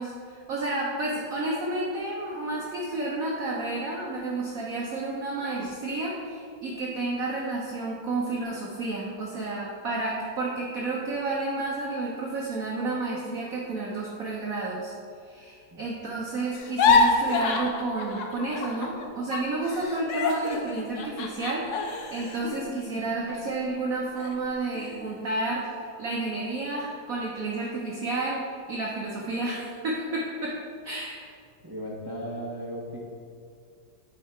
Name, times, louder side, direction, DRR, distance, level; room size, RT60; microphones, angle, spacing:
voice 1, 0.0-14.9 15.2-30.6 30.8-31.3, right 2 dB, 60° right, -4 dB, 1.0 m, -31 dB
voice 2, 15.7-16.0 31.6-33.0, equal, 35° right, -4 dB, 0.3 m, -36 dB
sound 1, 16.5-19.1 19.3-23.7 24.2-24.4 24.7-25.2, left 4 dB, 75° left, 0.6 m, -27 dB
9.1 x 3.7 x 4.5 m, 2.2 s
omnidirectional pair, 2.1 m